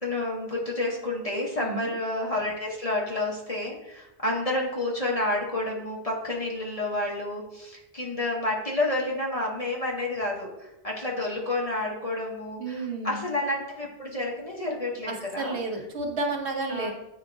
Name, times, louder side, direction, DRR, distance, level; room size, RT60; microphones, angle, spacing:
voice 1, 0.0-15.6 16.7-16.9, left 2 dB, 35° left, -3 dB, 1.0 m, -30 dB
voice 2, 1.6-1.9 12.6-13.2 15.1-16.9, right 3 dB, 70° right, 2 dB, 1.2 m, -31 dB
8.6 x 4.3 x 2.7 m, 0.92 s
omnidirectional pair, 1.2 m